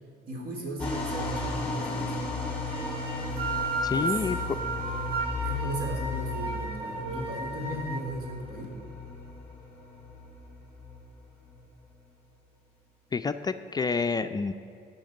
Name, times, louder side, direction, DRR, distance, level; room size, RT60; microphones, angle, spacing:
voice 1, 0.3-2.2 3.9-4.2 5.3-8.6, equal, 60° right, 0 dB, 3.4 m, -36 dB
sound 1, 0.8-11.6, left 2 dB, 5° left, 3.3 m, -35 dB
sound 2, 2.7-8.0, right 3 dB, 35° right, 3.2 m, -34 dB
voice 2, 3.8-4.6 13.1-14.5, left 5 dB, 25° left, 9 dB, 0.4 m, -28 dB
15.0 x 5.8 x 8.9 m, 2.6 s
cardioid pair, 110°, 17 cm